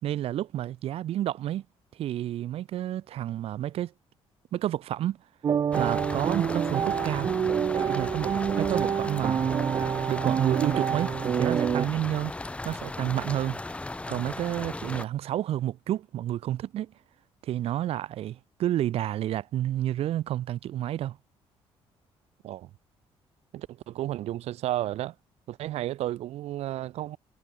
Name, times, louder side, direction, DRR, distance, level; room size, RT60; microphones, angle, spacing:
voice 1, 0.0-1.6 2.0-3.9 4.5-5.2 5.7-7.3 7.9-9.4 10.1-11.1 11.4-12.3 12.6-13.6 14.1-16.9 17.4-21.2, right 12 dB, 70° right, 2.0 m, -30 dB
sound 1, 5.4-11.9, right 8 dB, 35° right, 0.7 m, -27 dB
sound 2, 5.7-15.1, left 2 dB, 10° left, 3.6 m, -37 dB
voice 2, 23.5-25.1 25.5-27.2, right 14 dB, 85° right, 4.3 m, -32 dB
cardioid pair, 165°, 11 cm